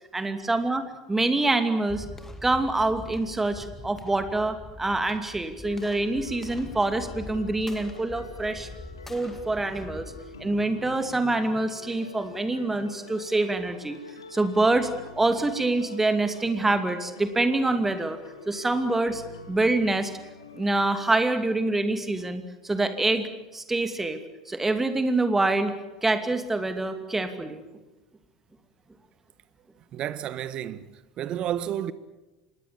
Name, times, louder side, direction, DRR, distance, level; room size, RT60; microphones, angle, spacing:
voice 1, 0.1-0.8 1.1-2.1 2.4-8.7 9.1-10.1 10.4-14.0 14.3-14.9 15.2-19.2 19.5-20.1 20.5-23.3 23.5-24.2 24.5-25.7 26.0-27.6, right 2 dB, 10° right, 2.6 m, -25 dB
sound 1, 1.9-11.0, left 2 dB, 15° left, 2.5 m, -43 dB
sound 2, 5.6-21.4, left 4 dB, 80° left, 2.7 m, -46 dB
voice 2, 29.9-31.9, right 11 dB, 40° right, 1.3 m, -31 dB
26.0 x 20.5 x 7.3 m
figure-of-eight pair, 75°, 2 cm